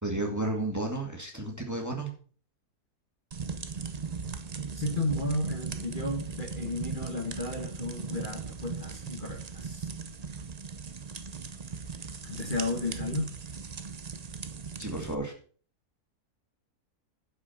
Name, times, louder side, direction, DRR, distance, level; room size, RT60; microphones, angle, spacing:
voice 1, 0.0-2.1 14.8-15.3, right 2 dB, 10° right, 1 dB, 1.9 m, -32 dB
sound 1, 3.3-15.1, right 5 dB, 40° right, 0.5 m, -38 dB
voice 2, 4.7-10.0 12.2-13.3, left 2 dB, 35° left, 2 dB, 1.7 m, -33 dB
11.5 x 6.3 x 5.9 m, 0.44 s
omnidirectional pair, 1.6 m